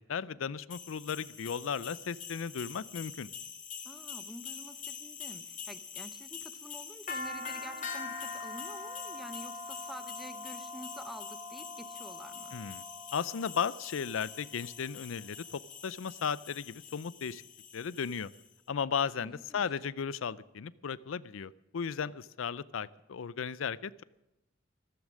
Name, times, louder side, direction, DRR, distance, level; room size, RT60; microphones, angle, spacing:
voice 1, 0.1-3.3 12.5-12.8 13.1-17.4 17.7-18.3 18.7-24.0, left 6 dB, 85° left, 19 dB, 0.5 m, -35 dB
sound 1, 0.7-18.4, left 5 dB, 40° left, 2.1 m, -43 dB
voice 2, 3.8-12.6 19.0-19.6, equal, ahead, 11 dB, 0.8 m, -49 dB
14.0 x 14.0 x 6.3 m, 0.92 s
head